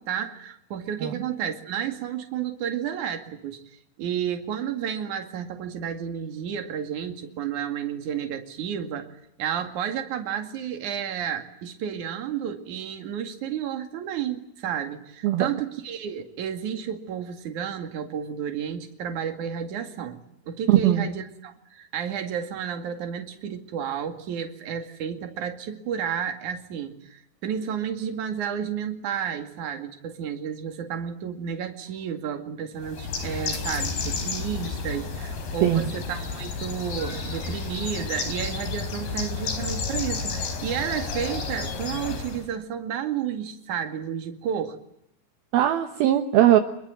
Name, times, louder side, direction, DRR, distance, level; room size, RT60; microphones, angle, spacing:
voice 1, 0.0-3.6 4.0-9.1 9.4-20.2 20.5-44.8, right 8 dB, 55° right, 6 dB, 3.3 m, -31 dB
voice 2, 20.7-21.0 35.6-35.8 45.5-46.6, right 12 dB, 70° right, 6 dB, 2.9 m, -19 dB
Bird, 32.8-42.5, left 4 dB, 65° left, 6.0 m, -31 dB
27.5 x 22.0 x 9.0 m, 0.76 s
omnidirectional pair, 4.8 m